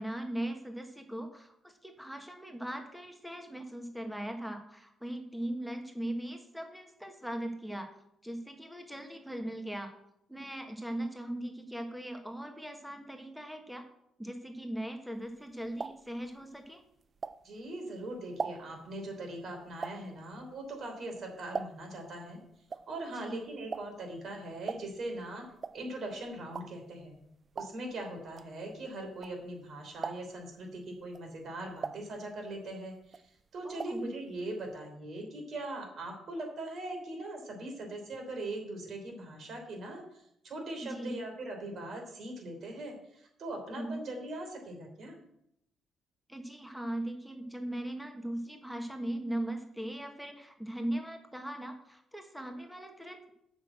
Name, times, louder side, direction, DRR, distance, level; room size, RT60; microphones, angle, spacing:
voice 1, 0.0-7.9 8.2-9.9 10.3-13.9 14.2-16.8 23.2-23.4 33.6-34.1 40.8-41.2 43.7-44.0 46.3-53.3, right 1 dB, ahead, 5 dB, 1.4 m, -39 dB
sound 1, 15.2-17.8 18.1-22.1 22.3-29.6 29.9-30.5 31.0-32.7 33.0-34.1 34.4-34.5 34.7-34.8, right 5 dB, 40° right, 0.4 m, -42 dB
voice 2, 17.4-22.4 22.7-25.4 25.7-27.1 27.5-45.2, right 1 dB, 60° right, 3 dB, 3.3 m, -41 dB
8.1 x 6.2 x 7.8 m, 0.76 s
cardioid pair, 90°, 0 cm